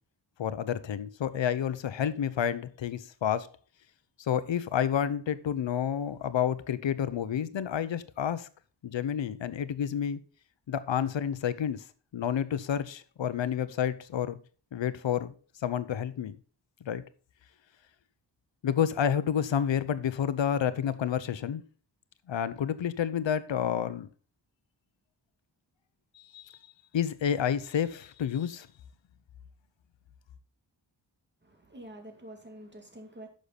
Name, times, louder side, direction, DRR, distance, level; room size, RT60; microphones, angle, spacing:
voice 1, 0.4-3.5 4.2-8.5 8.8-10.2 10.7-11.8 12.1-14.4 14.7-15.3 15.6-16.4 16.8-17.0 18.6-21.6 22.3-24.1 26.1-26.5 26.9-28.7, left 9 dB, 85° left, 0.9 m, -29 dB
voice 2, 31.4-33.3, right 1 dB, 25° right, 2.4 m, -47 dB
10.5 x 6.6 x 4.1 m
wide cardioid pair, 125°, 43 cm